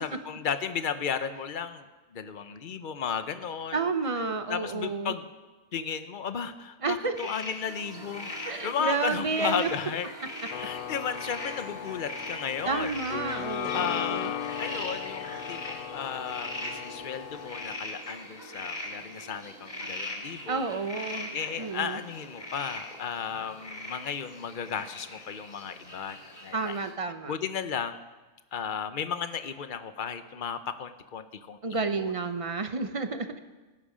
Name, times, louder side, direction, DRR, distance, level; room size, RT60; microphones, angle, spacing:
voice 1, 0.0-3.8 4.5-5.2 5.7-10.1 10.5-12.9 13.7-20.6 21.3-26.8 27.3-28.0 28.5-32.1, left 7 dB, 45° left, 11 dB, 0.7 m, -34 dB
voice 2, 3.7-5.1 6.8-7.1 8.5-9.7 12.7-14.3 20.5-21.3 21.6-22.0 26.5-27.3 31.6-33.4, right 4 dB, 40° right, 8 dB, 0.5 m, -30 dB
sound 1, 7.1-26.9, left 2 dB, 30° left, 2.4 m, -41 dB
sound 2, 7.6-22.8, right 3 dB, 70° right, 1.6 m, -49 dB
sound 3, 10.5-17.8, left 10 dB, 85° left, 1.1 m, -37 dB
18.0 x 11.0 x 5.0 m, 1.2 s
omnidirectional pair, 1.5 m